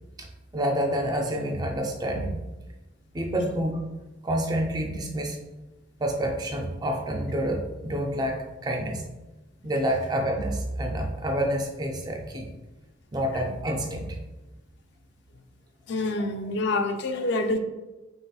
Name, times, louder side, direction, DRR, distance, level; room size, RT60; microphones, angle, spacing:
voice 1, 0.2-2.4 3.1-3.8 4.2-5.4 6.0-9.0 9.6-12.5 13.1-14.2 17.4-17.5, right 1 dB, 20° right, 2 dB, 0.3 m, -28 dB
voice 2, 15.9-17.6, left 2 dB, 55° left, 6 dB, 0.4 m, -26 dB
3.9 x 3.8 x 2.3 m, 1.1 s
head